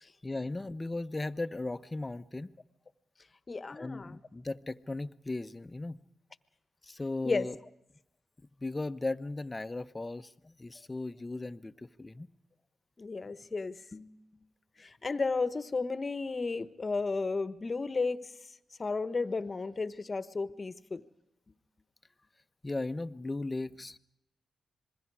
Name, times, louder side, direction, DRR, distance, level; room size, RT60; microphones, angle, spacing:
voice 1, 0.2-2.5 3.7-6.0 6.8-7.5 8.4-12.3 22.6-24.0, left 2 dB, 25° left, 12 dB, 1.0 m, -37 dB
voice 2, 3.5-4.2 7.2-7.5 13.0-14.2 14.8-18.3 18.8-21.0, left 4 dB, 45° left, 14 dB, 1.3 m, -33 dB
27.0 x 21.5 x 4.9 m, 0.84 s
supercardioid pair, 45°, 0 cm